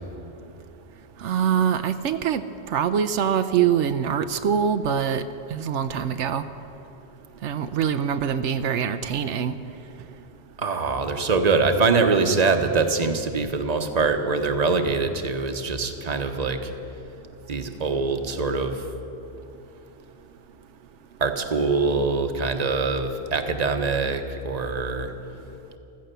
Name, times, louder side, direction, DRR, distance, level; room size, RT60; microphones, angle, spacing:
voice 1, 1.2-2.4 2.7-5.2 5.5-6.4 7.4-9.5, right 8 dB, 80° right, 10 dB, 0.9 m, -24 dB
voice 2, 10.6-16.7 17.5-18.9 21.2-25.1, right 4 dB, 35° right, 6 dB, 1.0 m, -23 dB
15.0 x 14.0 x 6.8 m, 2.9 s
omnidirectional pair, 1.2 m